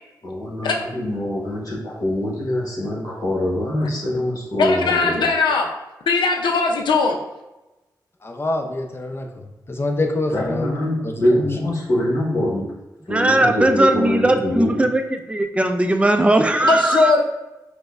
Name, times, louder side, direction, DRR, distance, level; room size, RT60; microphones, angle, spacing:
voice 1, 0.2-5.3 10.3-12.7 13.1-14.8, left 1 dB, 50° left, -6 dB, 1.1 m, -24 dB
voice 2, 4.6-5.7 6.1-7.2 16.6-17.2, left 4 dB, 85° left, 2 dB, 0.5 m, -19 dB
voice 3, 8.2-9.3 9.7-10.7 11.0-11.1, left 2 dB, 30° left, 3 dB, 0.6 m, -25 dB
voice 4, 13.1-15.0 15.3-17.1, right 1 dB, 15° right, 6 dB, 0.4 m, -18 dB
4.9 x 2.1 x 2.4 m, 1.0 s
cardioid pair, 55°, 8 cm